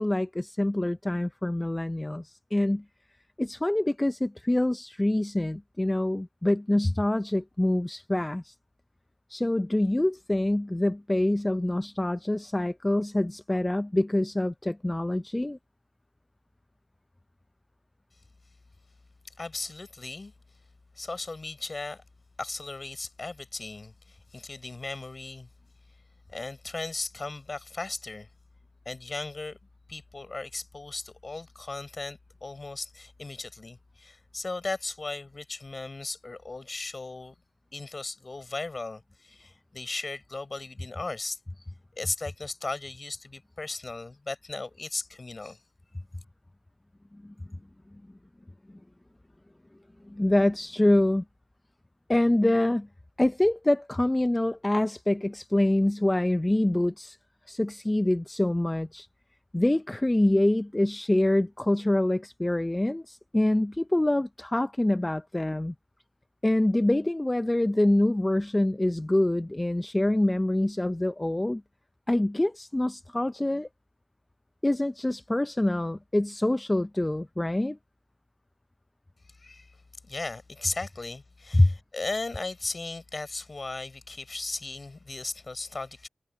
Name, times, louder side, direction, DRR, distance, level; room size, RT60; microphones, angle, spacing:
voice 1, 0.0-2.8 3.4-8.5 9.3-15.6 47.2-47.3 50.1-51.2 52.1-52.9 53.2-57.2 57.5-59.1 59.5-65.7 66.4-71.6 72.1-73.7 74.6-77.8 81.5-81.7, left 1 dB, 15° left, 0.6 m, -25 dB
voice 2, 19.4-20.3 21.0-22.0 22.4-25.5 26.3-28.3 28.8-29.6 29.9-37.4 37.7-41.4 41.9-45.6 79.4-79.7 80.0-86.1, left 3 dB, 40° left, 4.6 m, -36 dB
cardioid pair, 70°, 0 cm